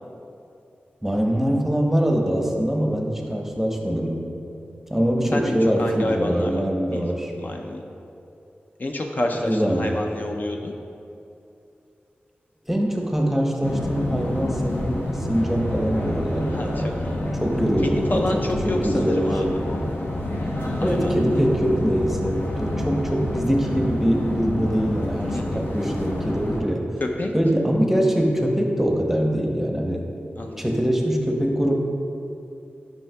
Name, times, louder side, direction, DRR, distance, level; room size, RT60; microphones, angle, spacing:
voice 1, 1.0-4.2 4.9-7.3 9.4-10.0 12.7-16.9 17.4-19.4 20.8-26.8 27.3-30.1 30.6-31.8, equal, 5° right, 1 dB, 0.7 m, -23 dB
voice 2, 5.3-6.6 6.9-7.1 7.4-7.8 8.8-10.7 16.5-16.7 17.0-17.2 17.8-19.5 20.8-21.1 25.3-25.6 27.2-27.3 30.4-30.6, left 1 dB, 50° left, 2 dB, 0.5 m, -28 dB
sound 1, 13.6-26.6, left 1 dB, 80° left, 0.8 m, -28 dB
7.6 x 5.5 x 2.2 m, 2.7 s
cardioid pair, 45°, 4 cm